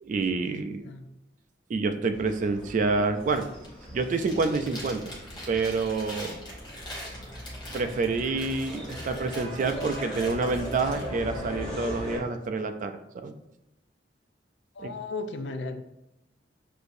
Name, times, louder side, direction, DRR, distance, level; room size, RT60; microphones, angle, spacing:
voice 1, 0.0-0.9 1.7-3.5 3.9-5.1 5.5-6.4 7.7-13.3 14.8-14.9, right 3 dB, 45° right, 8 dB, 0.3 m, -28 dB
sound 1, 2.1-12.2, equal, 5° left, 1.4 m, -39 dB
Chewing mastication, 3.2-3.7 4.0-11.0, left 1 dB, 25° left, 0.9 m, -43 dB
voice 2, 14.8-15.8, left 3 dB, 75° left, 7 dB, 0.4 m, -35 dB
6.2 x 2.6 x 2.6 m, 0.87 s
head